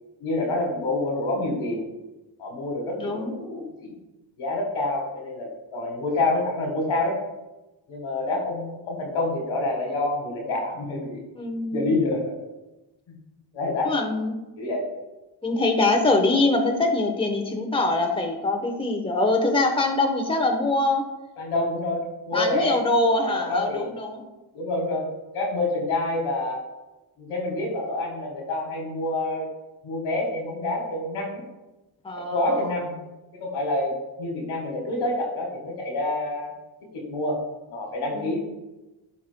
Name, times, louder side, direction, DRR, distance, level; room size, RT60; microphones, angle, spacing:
voice 1, 0.2-1.9 2.4-3.9 4.4-7.2 7.9-11.2 11.7-12.3 13.5-13.9 14.6-14.8 21.4-22.8 23.1-23.9 24.5-26.6 27.2-29.5 29.8-31.4 32.3-32.9 33.3-33.9 34.2-36.5 36.9-37.4 37.7-38.4, left 2 dB, 85° left, 0 dB, 1.7 m, -27 dB
voice 2, 3.0-3.3 11.4-11.9 13.8-14.3 15.4-21.0 22.3-24.2 32.0-32.6 38.1-38.4, left 2 dB, 10° left, 3 dB, 0.9 m, -23 dB
11.0 x 4.2 x 2.2 m, 1.0 s
cardioid pair, 60°, 48 cm